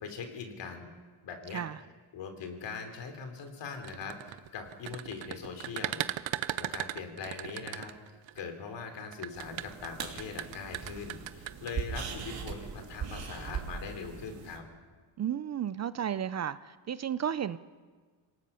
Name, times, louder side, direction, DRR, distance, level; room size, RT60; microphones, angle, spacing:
voice 1, 0.0-0.9 1.2-1.7 2.1-6.0 6.3-14.6, left 5 dB, 70° left, 6 dB, 3.4 m, -41 dB
sound 1, 3.7-8.4 9.1-11.7, right 15 dB, 80° right, 0.8 m, -37 dB
sound 2, 9.4-14.6, right 6 dB, 50° right, 3.1 m, -40 dB
voice 2, 15.2-17.6, right 9 dB, 35° right, 15 dB, 0.5 m, -33 dB
26.5 x 18.5 x 5.7 m, 1.5 s
cardioid pair, 120°, 45 cm